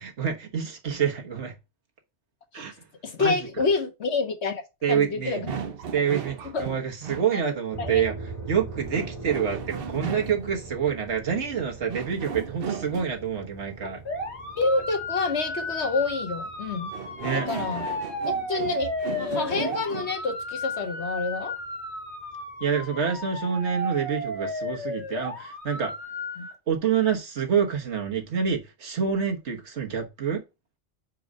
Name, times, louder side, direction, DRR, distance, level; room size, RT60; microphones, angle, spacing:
voice 1, 0.0-1.6 2.5-2.7 3.2-3.5 4.8-5.4 5.9-8.1 8.5-14.0 17.2-17.5 22.6-25.9 26.7-30.4, right 7 dB, 75° right, 1.5 m, -27 dB
voice 2, 3.0-4.6 4.9-5.6 6.5-6.8 7.3-7.4 7.8-8.0 14.6-16.9 17.5-17.8 18.2-18.9 19.2-21.6 26.4-26.5, left 4 dB, 70° left, 1.5 m, -28 dB
sound 1, 5.4-7.3 8.9-10.6 11.9-13.2 16.9-20.2, right 6 dB, 60° right, 0.9 m, -35 dB
sound 2, 7.7-22.9, right 3 dB, 25° right, 3.4 m, -43 dB
sound 3, 14.1-26.5, left 1 dB, 50° left, 2.7 m, -33 dB
4.8 x 4.7 x 5.3 m
omnidirectional pair, 1.2 m